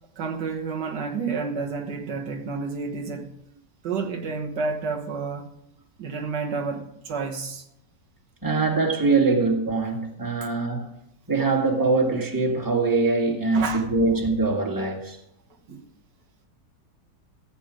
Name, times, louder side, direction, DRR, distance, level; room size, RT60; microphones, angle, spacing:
voice 1, 0.2-3.3 3.8-5.5 6.0-7.7 13.5-14.1 15.7-15.9, right 4 dB, 80° right, 1.9 m, -30 dB
voice 2, 8.4-11.0 11.3-15.2, right 3 dB, 10° right, 1.8 m, -23 dB
14.5 x 8.2 x 5.0 m
omnidirectional pair, 1.8 m